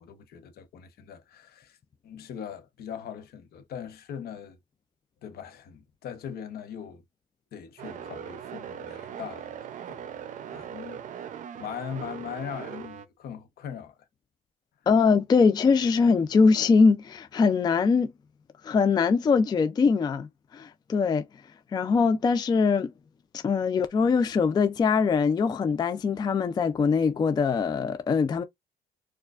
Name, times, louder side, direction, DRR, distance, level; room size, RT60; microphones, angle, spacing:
voice 1, 0.0-1.8 2.0-4.6 5.2-7.0 7.5-9.5 9.9-10.1 10.5-11.3 11.6-14.0, left 8 dB, 65° left, 0.9 m, -40 dB
sound 1, 7.8-13.1, right 9 dB, 50° right, 0.5 m, -40 dB
voice 2, 14.9-18.1 18.6-21.2 21.7-22.9 23.3-28.4, left 5 dB, 25° left, 0.3 m, -22 dB
4.4 x 2.4 x 2.4 m
cardioid pair, 110°, 17 cm